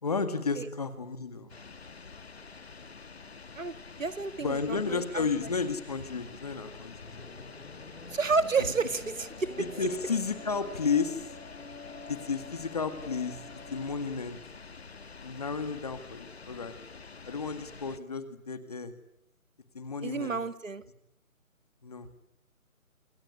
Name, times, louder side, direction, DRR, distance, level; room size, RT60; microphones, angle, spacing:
voice 1, 0.0-1.5 4.4-7.3 9.6-11.3 12.1-13.4 13.7-14.4 15.2-16.8 17.2-18.9 19.7-20.4 21.8-22.1, left 5 dB, 25° left, 10 dB, 2.1 m, -32 dB
sound 1, 1.5-18.0, left 4 dB, 45° left, 1.7 m, -48 dB
voice 2, 4.0-5.3 8.1-9.7 20.0-20.8, right 4 dB, 60° right, 13 dB, 1.9 m, -30 dB
sound 2, 7.0-13.9, left 3 dB, 65° left, 4.8 m, -47 dB
27.5 x 22.0 x 9.8 m, 0.78 s
figure-of-eight pair, 175°, 43 cm